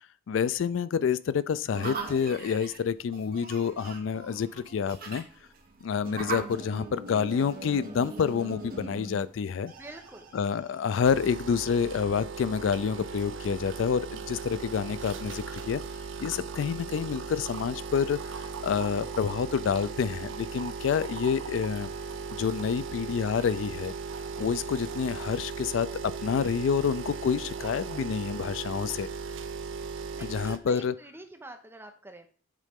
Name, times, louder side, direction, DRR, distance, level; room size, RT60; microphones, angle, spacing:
voice 1, 0.3-5.2 5.8-9.7 10.3-15.8 16.2-21.9 22.4-23.9 24.4-25.9 26.2-29.1 30.2-30.9, left 6 dB, 70° left, 0.3 m, -28 dB
sound 1, 1.7-11.3, right 3 dB, 45° right, 1.2 m, -41 dB
voice 2, 9.8-10.3 30.1-32.3, right 2 dB, 10° right, 0.8 m, -46 dB
sound 2, 11.0-30.6, right 5 dB, 70° right, 0.6 m, -37 dB
8.3 x 3.7 x 3.6 m
head